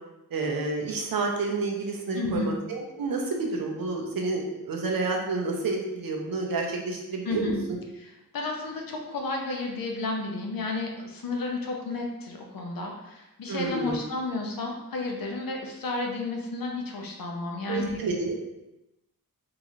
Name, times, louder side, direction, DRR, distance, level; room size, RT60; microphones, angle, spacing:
voice 1, 0.3-7.5 13.5-14.0 17.7-18.4, right 3 dB, 75° right, 1 dB, 0.7 m, -29 dB
voice 2, 2.1-2.5 7.3-7.6 8.0-18.0, left 3 dB, 75° left, 1 dB, 0.7 m, -32 dB
3.8 x 2.5 x 3.0 m, 0.94 s
wide cardioid pair, 155°, 35 cm